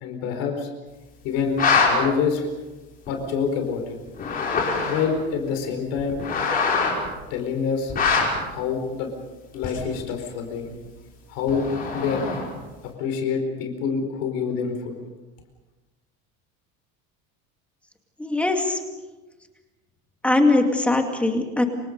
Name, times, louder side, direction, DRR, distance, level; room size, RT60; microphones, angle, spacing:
voice 1, 0.0-0.7 1.2-2.5 3.1-3.8 4.9-6.2 7.3-7.9 8.4-9.1 9.5-10.7 11.3-11.7 11.9-12.4 13.0-14.9, left 6 dB, 55° left, 4 dB, 4.6 m, -26 dB
sound 1, 1.4-1.9 3.1-3.2 4.1-5.2 6.0-7.1 7.9-8.4 9.6-10.0 11.5-12.6, left 5 dB, 30° left, 5.9 m, -23 dB
voice 2, 18.2-18.8 20.2-21.6, left 2 dB, 5° left, 3 dB, 2.3 m, -21 dB
28.5 x 25.5 x 5.4 m, 1.2 s
cardioid pair, 175°, 31 cm